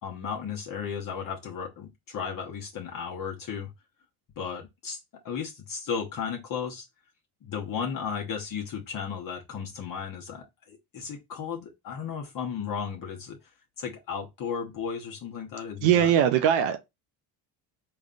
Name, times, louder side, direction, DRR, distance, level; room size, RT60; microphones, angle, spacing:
voice 1, 0.0-3.7 4.4-5.0 5.2-6.8 7.4-13.4 13.8-16.1, left 7 dB, 45° left, 1.0 m, -34 dB
voice 2, 15.8-16.8, right 10 dB, 90° right, 0.7 m, -21 dB
3.7 x 3.3 x 2.5 m
cardioid pair, 105°, 48 cm